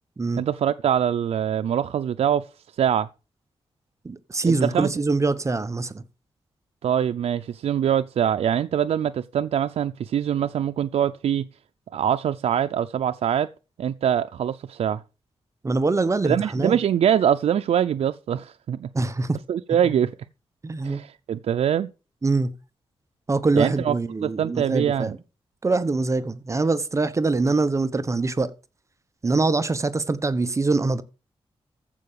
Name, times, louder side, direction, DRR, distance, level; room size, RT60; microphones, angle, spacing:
voice 1, 0.4-2.5 2.7-3.1 4.5-4.9 6.8-11.5 11.9-13.5 13.8-15.0 16.2-18.9 19.5-20.1 20.8-21.9 23.6-23.9 24.2-25.2, right 9 dB, 90° right, 0.5 m, -23 dB
voice 2, 4.0-6.0 15.6-16.8 18.9-19.4 20.6-21.0 22.2-22.5 23.3-25.2 25.6-28.5 29.2-31.0, right 3 dB, 30° right, 0.9 m, -23 dB
14.5 x 5.5 x 6.8 m
wide cardioid pair, 125°, 11 cm